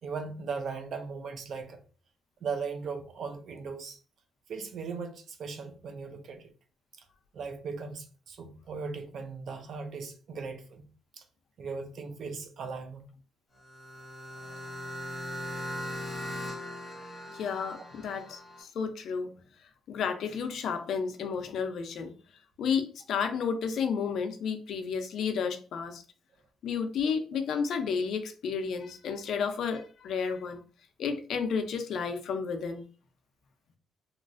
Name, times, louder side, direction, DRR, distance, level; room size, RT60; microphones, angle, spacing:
voice 1, 0.0-1.8 2.4-4.0 4.5-6.5 7.0-7.1 7.3-10.9 11.1-11.2 11.6-13.1, right 5 dB, 55° right, 0.5 m, -38 dB
sound 1, 13.6-18.6, left 1 dB, 15° left, 0.9 m, -39 dB
voice 2, 17.3-19.3 19.9-22.1 22.6-26.0 26.6-30.6 31.0-32.8, left 6 dB, 65° left, 0.4 m, -32 dB
3.0 x 2.4 x 2.4 m
cardioid pair, 150°, 0 cm